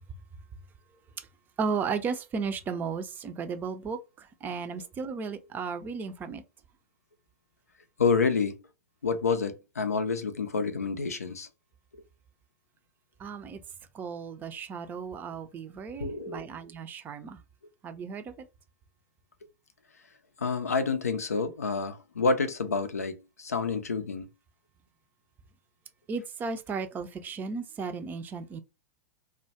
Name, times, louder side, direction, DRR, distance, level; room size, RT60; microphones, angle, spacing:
voice 1, 1.6-6.4 13.2-13.6 13.9-17.4 17.8-18.5 26.1-28.6, right 5 dB, 25° right, 0.4 m, -35 dB
voice 2, 8.0-8.6 9.0-11.5 11.9-12.0 16.0-16.5 20.4-24.3, left 4 dB, 85° left, 0.4 m, -28 dB
2.2 x 2.1 x 2.7 m
figure-of-eight pair, 100°, 8 cm